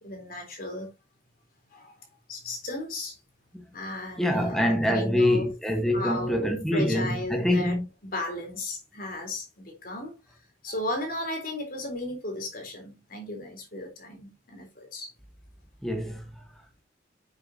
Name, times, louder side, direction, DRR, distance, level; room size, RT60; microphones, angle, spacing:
voice 1, 0.0-0.9 1.7-1.9 2.3-3.2 3.7-5.5 5.9-10.2 10.6-15.1, left 1 dB, 50° left, 3.6 m, -35 dB
voice 2, 4.2-7.8 15.8-16.4, equal, ahead, 1.3 m, -25 dB
8.0 x 6.7 x 2.8 m
head